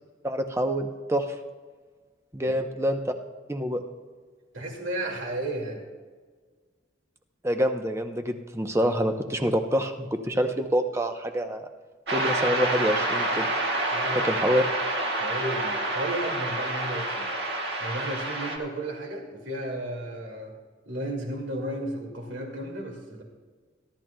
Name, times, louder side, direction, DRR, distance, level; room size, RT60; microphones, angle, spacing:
voice 1, 0.2-1.3 2.3-3.1 3.5-3.8 7.4-11.7 12.1-13.5 14.1-14.6, equal, 15° right, 6 dB, 0.7 m, -26 dB
voice 2, 4.5-5.8 13.9-14.6 15.1-17.5 17.8-20.5 20.9-23.2, right 1 dB, 85° right, 1 dB, 2.2 m, -34 dB
sound 1, 12.1-18.6, right 2 dB, 60° right, 1.7 m, -28 dB
22.5 x 12.5 x 2.2 m, 1.5 s
head